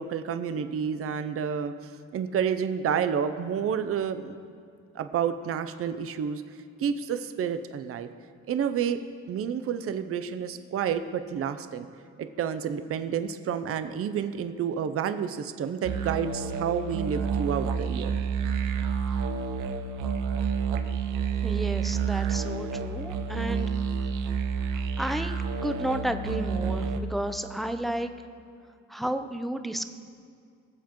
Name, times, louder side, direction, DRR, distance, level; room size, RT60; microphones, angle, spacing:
voice 1, 0.0-1.7 2.1-4.4 4.9-6.4 6.8-8.1 8.5-9.0 9.3-11.9 12.2-18.1, right 8 dB, 50° right, 10 dB, 0.6 m, -29 dB
sound 1, 15.8-27.0, right 5 dB, 85° right, 0.8 m, -29 dB
voice 2, 21.4-23.7 24.6-28.1 28.9-29.8, right 1 dB, ahead, 8 dB, 0.6 m, -32 dB
19.5 x 7.2 x 3.0 m, 2.4 s
cardioid pair, 90°, 30 cm